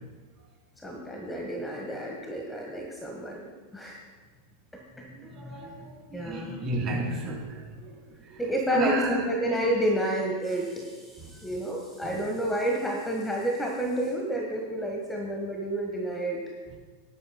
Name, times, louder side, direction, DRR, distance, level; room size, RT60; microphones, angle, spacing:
voice 1, 0.8-3.5 3.7-4.0 5.0-5.1 5.4-5.6 6.1-6.6 8.4-16.4, right 1 dB, 10° left, 0 dB, 1.4 m, -30 dB
voice 2, 5.3-7.4 7.8-7.9 8.3-8.4 8.7-9.2 12.0-12.2, right 2 dB, 30° right, -2 dB, 3.7 m, -31 dB
18.5 x 10.5 x 2.2 m, 1.4 s
figure-of-eight pair, 90°, 0 cm